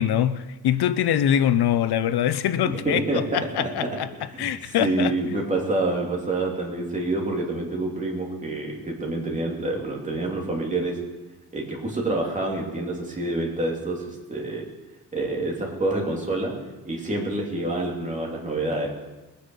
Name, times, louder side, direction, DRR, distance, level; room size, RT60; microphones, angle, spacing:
voice 1, 0.0-4.1 4.4-5.1, left 10 dB, 90° left, 0.7 m, -23 dB
voice 2, 2.6-4.0 4.3-4.5 4.8-11.0 11.5-14.6 15.1-16.5 16.8-18.9, right 2 dB, 20° right, 2.9 m, -27 dB
21.0 x 9.4 x 5.4 m
wide cardioid pair, 165°, 37 cm